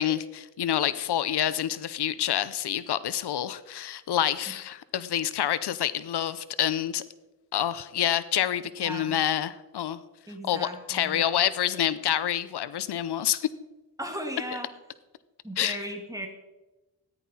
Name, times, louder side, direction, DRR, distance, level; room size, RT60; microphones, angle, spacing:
voice 1, 0.0-7.0 7.5-10.0 10.4-13.5 15.6-15.8, left 10 dB, 85° left, 16 dB, 0.6 m, -27 dB
voice 2, 8.8-9.2 10.3-11.4 14.0-14.7 15.4-16.3, equal, 10° right, 3 dB, 2.1 m, -37 dB
14.0 x 10.5 x 4.2 m, 1.0 s
wide cardioid pair, 90°, 39 cm